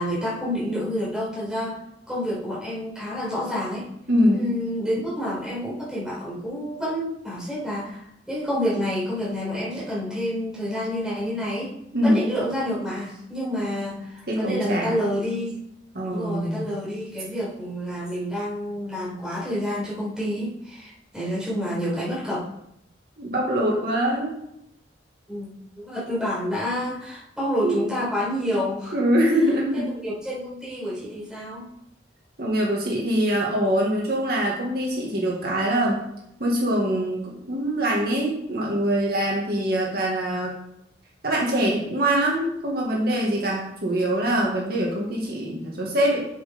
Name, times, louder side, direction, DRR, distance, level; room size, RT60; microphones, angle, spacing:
voice 1, 0.0-1.8 2.1-3.9 4.3-8.0 8.3-11.7 12.0-15.6 16.0-22.5 25.3-25.5 25.8-29.0 30.0-31.7, equal, 5° right, -8 dB, 4.3 m, -28 dB
voice 2, 4.1-4.5 11.9-12.2 14.3-14.9 15.9-16.7 23.2-24.4 27.6-27.8 28.9-29.9 32.4-36.0 36.4-40.5 41.2-46.3, right 1 dB, 55° right, -3 dB, 2.1 m, -23 dB
7.7 x 7.5 x 5.3 m, 0.79 s
head